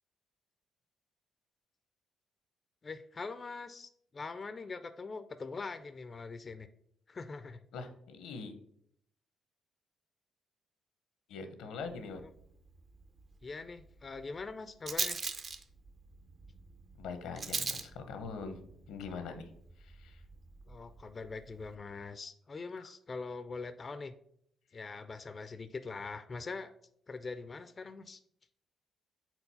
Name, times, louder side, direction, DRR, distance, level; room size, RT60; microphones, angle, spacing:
voice 1, 2.8-6.7 7.1-7.7 13.4-15.2 20.7-24.1 24.7-26.7 27.1-28.2, left 4 dB, 35° left, 11 dB, 0.3 m, -43 dB
voice 2, 7.7-8.5 11.3-12.2 17.0-18.6 18.9-19.5 19.8-20.2 22.8-22.9, left 4 dB, 90° left, 8 dB, 0.8 m, -43 dB
Rattle, 11.8-21.8, right 4 dB, 40° right, 0.6 m, -43 dB
4.5 x 4.0 x 5.4 m, 0.70 s
cardioid pair, 90°, 0 cm